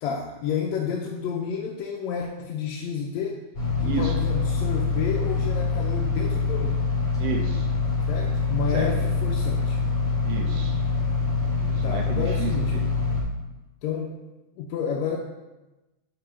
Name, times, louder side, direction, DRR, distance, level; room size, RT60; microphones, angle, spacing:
voice 1, 0.0-3.4 3.8-6.8 8.1-9.8 11.8-12.8 13.8-14.1 14.6-15.2, left 6 dB, 75° left, 0 dB, 1.8 m, -30 dB
sound 1, 3.5-13.2, left 4 dB, 30° left, 3.1 m, -25 dB
voice 2, 3.8-4.2 7.2-7.7 8.7-8.9 10.2-10.8 11.6-12.9, right 5 dB, 75° right, 3 dB, 1.5 m, -32 dB
5.7 x 4.9 x 5.6 m, 1.1 s
omnidirectional pair, 3.3 m